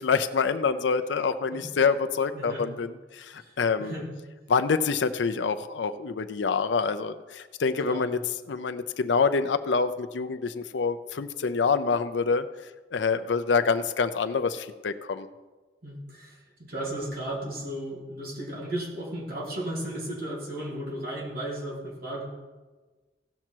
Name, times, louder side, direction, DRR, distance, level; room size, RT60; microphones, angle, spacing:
voice 1, 0.0-3.9 4.5-8.2 8.5-12.5 12.9-15.3, left 5 dB, 75° left, 10 dB, 0.5 m, -26 dB
voice 2, 2.3-2.7 3.3-4.1 7.8-8.1 15.8-22.3, right 1 dB, 55° right, -3 dB, 2.7 m, -35 dB
16.5 x 6.0 x 4.5 m, 1.3 s
head